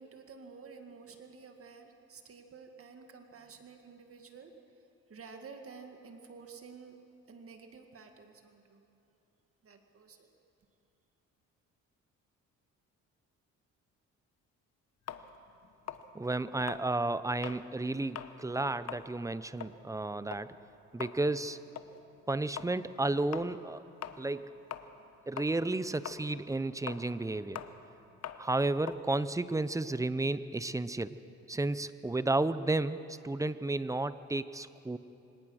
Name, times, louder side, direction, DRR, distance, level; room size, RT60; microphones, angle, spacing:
voice 1, 0.0-4.5 5.1-7.0 7.3-8.8 9.6-10.3, right 5 dB, 50° right, 5 dB, 2.0 m, -51 dB
sound 1, 15.1-17.7 18.0-18.4 18.7-25.1 25.4-30.1, left 9 dB, 55° left, 1.0 m, -44 dB
voice 2, 16.1-20.5 20.9-21.6 22.3-23.8 24.2-24.5 25.3-27.6 28.4-31.2 31.5-35.0, right 2 dB, 10° right, 14 dB, 0.7 m, -32 dB
23.5 x 18.5 x 6.4 m, 2.8 s
cardioid pair, 90°, 30 cm